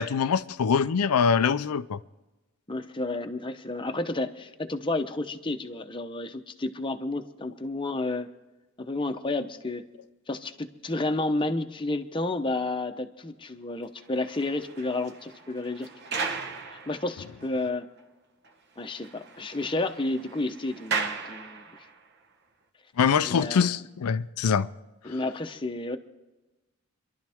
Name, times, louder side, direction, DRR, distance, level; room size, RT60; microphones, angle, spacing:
voice 1, 0.0-2.0 23.0-24.7, left 6 dB, 90° left, 0.4 m, -24 dB
voice 2, 2.7-8.3 8.8-9.9 10.3-15.9 16.7-17.9 18.8-21.6 23.2-23.8 25.0-26.0, left 2 dB, 20° left, 0.8 m, -31 dB
sound 1, 14.0-17.5 18.0-18.1 18.4-18.5 18.8-22.1, right 5 dB, 50° right, 1.1 m, -36 dB
27.5 x 12.0 x 3.5 m
head